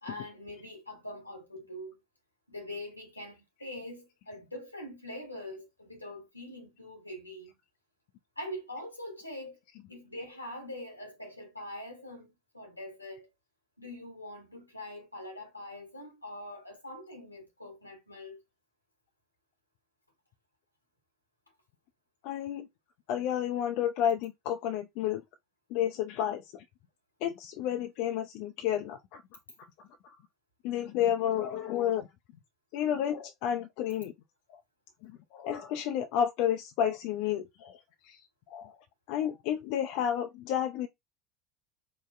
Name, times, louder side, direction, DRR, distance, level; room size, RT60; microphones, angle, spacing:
voice 1, 0.0-2.0 2.5-7.5 8.4-9.6 9.9-13.3 13.8-18.4, left 1 dB, 90° left, 1.0 m, -43 dB
voice 2, 22.2-22.7 23.1-25.2 25.7-26.6 27.2-29.2 29.8-30.1 30.6-32.1 32.7-34.1 35.0-37.8 38.0-38.2 38.5-38.8 39.1-40.9, left 10 dB, 55° left, 0.4 m, -31 dB
4.7 x 2.0 x 2.4 m
figure-of-eight pair, 70°, 0 cm